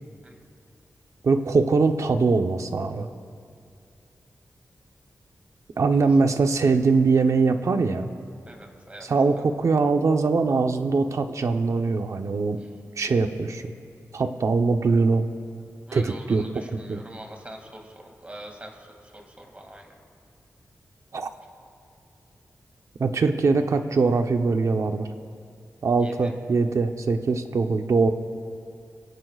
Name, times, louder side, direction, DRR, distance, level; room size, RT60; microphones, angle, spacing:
voice 1, 1.2-3.1 5.8-8.1 9.1-12.6 13.0-13.7 14.1-15.2 15.9-16.4 16.9-17.0 21.1-21.3 23.0-25.1 25.8-28.1, right 4 dB, 65° right, 6 dB, 0.9 m, -22 dB
voice 2, 8.4-9.1 12.6-12.7 15.9-19.9 26.0-26.4, right 1 dB, 25° right, 2 dB, 2.4 m, -44 dB
29.5 x 17.0 x 2.5 m, 2.3 s
wide cardioid pair, 90°, 6 cm